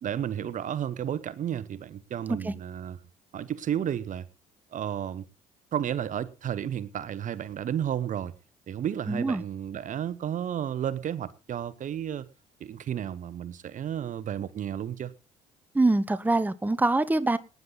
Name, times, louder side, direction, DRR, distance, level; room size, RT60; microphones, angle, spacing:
voice 1, 0.0-3.0 3.3-4.3 4.7-5.3 5.7-8.3 8.7-12.3 12.6-15.1, right 9 dB, 50° right, 1.1 m, -32 dB
voice 2, 9.1-9.4 15.7-17.4, right 2 dB, 10° right, 1.0 m, -24 dB
18.5 x 9.6 x 4.0 m
supercardioid pair, 75°, 16 cm